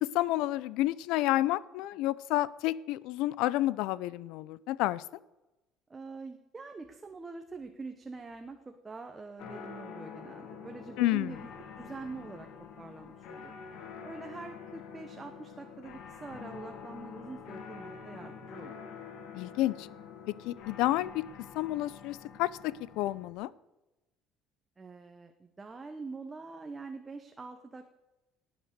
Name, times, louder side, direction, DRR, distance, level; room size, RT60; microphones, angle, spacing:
voice 1, 0.0-5.0 11.0-11.3 19.3-19.9 20.3-21.3 21.6-23.5, left 16 dB, 75° left, 20 dB, 0.5 m, -30 dB
voice 2, 5.9-12.5 12.8-13.6 14.0-18.7 24.8-27.9, right 3 dB, 15° right, 5 dB, 0.9 m, -45 dB
sound 1, 9.4-23.3, left 6 dB, 55° left, 2.1 m, -47 dB
19.0 x 8.1 x 6.7 m, 1.0 s
cardioid pair, 165°, 0 cm